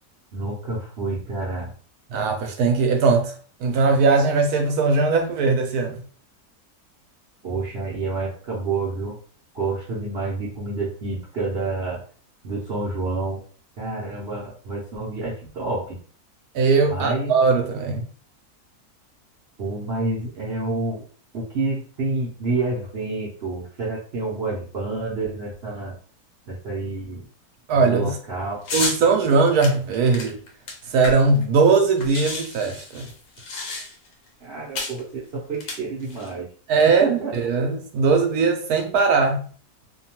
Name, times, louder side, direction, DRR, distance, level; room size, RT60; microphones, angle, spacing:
voice 1, 0.3-1.7 7.4-9.2 9.5-12.1 12.4-13.4 13.8-16.0 16.9-17.3 19.6-21.1 21.3-26.0 26.5-27.3 27.7-28.6 34.4-36.5 36.8-37.3, right 3 dB, 55° right, 0.7 m, -28 dB
voice 2, 2.1-3.3 3.6-6.0 16.5-18.0 27.7-28.2 28.7-30.4 30.9-33.1 36.7-39.5, right 4 dB, 80° right, 1.0 m, -19 dB
sound 1, 28.7-29.0 29.6-31.4 31.7-31.8 32.0-34.1 34.8-35.0 35.5-36.3, left 3 dB, 65° left, 1.0 m, -31 dB
2.7 x 2.2 x 2.8 m
omnidirectional pair, 1.6 m